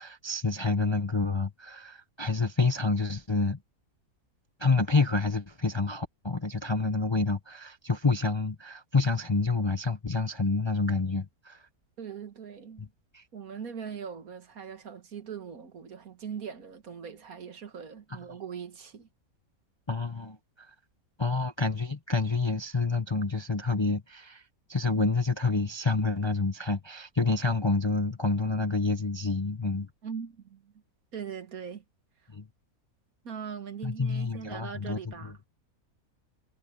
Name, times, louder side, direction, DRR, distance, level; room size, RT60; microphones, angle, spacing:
voice 1, 0.0-3.6 4.6-11.6 13.1-13.2 19.9-20.7 21.2-24.4 24.7-29.9 32.3-32.5 33.8-35.0, left 3 dB, 25° left, 0.7 m, -28 dB
voice 2, 12.0-12.9 13.3-19.1 30.0-30.7 31.1-31.8 32.2-32.3 33.2-35.4, right 7 dB, 70° right, 2.0 m, -40 dB
omnidirectional pair, 1.6 m